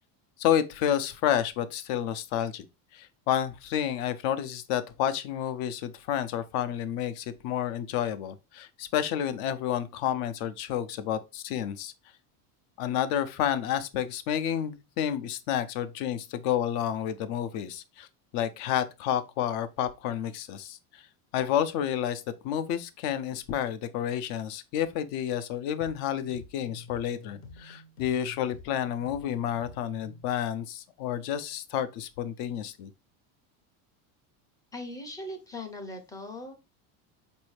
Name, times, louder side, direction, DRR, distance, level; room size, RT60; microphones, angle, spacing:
voice 1, 0.4-2.6 2.9-11.9 12.8-18.1 18.3-21.0 21.3-32.9, left 10 dB, 60° left, 0.5 m, -30 dB
sound 1, 25.8-30.3, left 4 dB, 80° left, 0.9 m, -48 dB
voice 2, 34.7-36.5, left 1 dB, 10° left, 0.4 m, -39 dB
4.1 x 2.7 x 3.1 m
cardioid pair, 150°, 43 cm